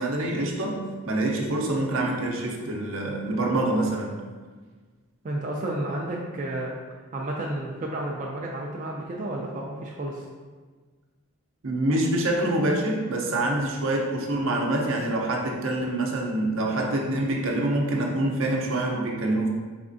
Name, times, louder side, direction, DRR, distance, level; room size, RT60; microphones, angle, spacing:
voice 1, 0.0-4.2 11.6-19.5, right 1 dB, 70° right, 0 dB, 0.6 m, -26 dB
voice 2, 5.2-6.7 7.1-10.3, right 1 dB, 35° right, -2 dB, 0.3 m, -31 dB
4.1 x 3.5 x 2.6 m, 1.4 s
head